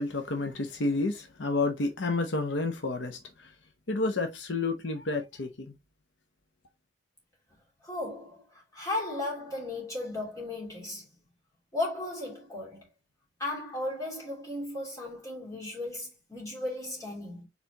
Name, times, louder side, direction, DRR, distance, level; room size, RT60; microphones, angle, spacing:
voice 1, 0.0-3.5 3.9-5.7, left 3 dB, 80° left, 0.8 m, -30 dB
voice 2, 7.8-11.1 11.7-12.9 13.4-17.5, left 2 dB, 20° left, 2.8 m, -35 dB
4.4 x 4.1 x 2.8 m
head